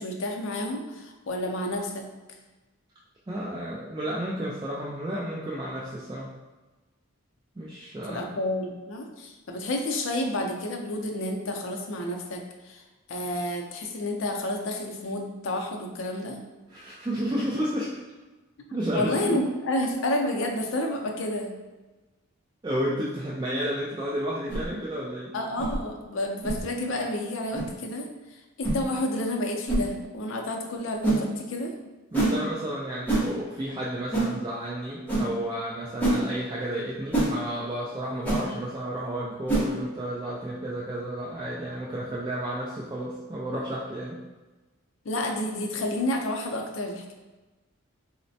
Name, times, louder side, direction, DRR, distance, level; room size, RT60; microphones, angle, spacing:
voice 1, 0.0-2.1 8.1-12.8 13.1-16.4 18.7-21.5 25.3-31.7 45.0-47.1, left 1 dB, 65° left, 2 dB, 0.5 m, -30 dB
voice 2, 3.3-6.3 7.6-8.4 16.7-18.0 18.7-19.4 22.6-25.3 32.1-44.2, right 1 dB, 20° right, -6 dB, 0.3 m, -32 dB
sound 1, 24.5-24.7 25.6-25.8 26.4-26.6 27.5-27.7 28.6-28.8 29.7-29.8 31.0-31.2 32.1-32.4 33.1-33.3 34.1-34.3 35.1-35.3 36.0-36.2 37.1-37.3 38.2-38.4 39.5-39.7, right 2 dB, 10° left, 0.8 m, -24 dB
4.0 x 2.1 x 2.6 m, 1.2 s
head